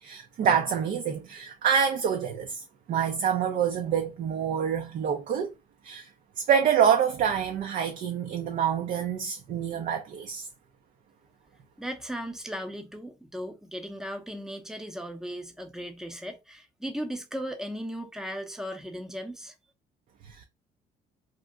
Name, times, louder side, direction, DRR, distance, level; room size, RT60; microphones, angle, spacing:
voice 1, 0.0-5.5 5.8-6.1 6.4-10.5 20.3-20.4, right 8 dB, 50° right, 0.4 m, -26 dB
voice 2, 11.8-19.5, equal, 5° right, 0.6 m, -37 dB
2.4 x 2.1 x 3.6 m
cardioid pair, 110°, 17 cm